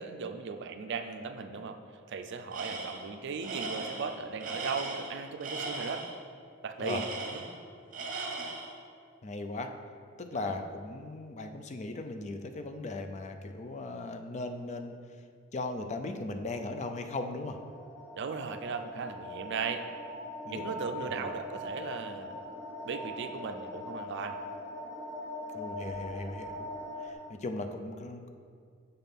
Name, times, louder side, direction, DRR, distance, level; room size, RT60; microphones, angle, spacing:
voice 1, 0.0-1.8 2.1-6.0 6.6-7.4 10.3-10.6 18.2-19.8 20.5-22.4 22.8-24.4, right 5 dB, 60° right, 7 dB, 0.4 m, -37 dB
Tools, 2.5-3.1 3.4-6.2 6.8-7.6 7.9-8.8, right 3 dB, 40° right, 0.9 m, -38 dB
voice 2, 9.2-9.7 10.2-14.9 15.5-17.6 20.4-20.6 21.2-21.3 25.5-26.7 27.0-28.3, left 2 dB, 35° left, 6 dB, 0.4 m, -38 dB
sound 1, 16.7-27.1, left 1 dB, 10° left, 1.1 m, -42 dB
6.7 x 5.7 x 3.6 m, 2.2 s
head